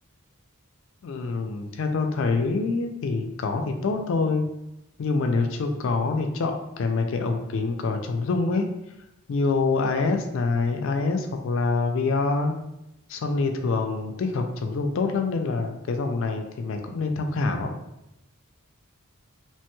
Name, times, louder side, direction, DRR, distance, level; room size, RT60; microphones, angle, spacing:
voice 1, 1.0-4.5 5.0-8.7 9.3-12.5 13.1-17.7, left 3 dB, 60° left, 5 dB, 0.3 m, -26 dB
3.0 x 2.9 x 2.2 m, 0.88 s
head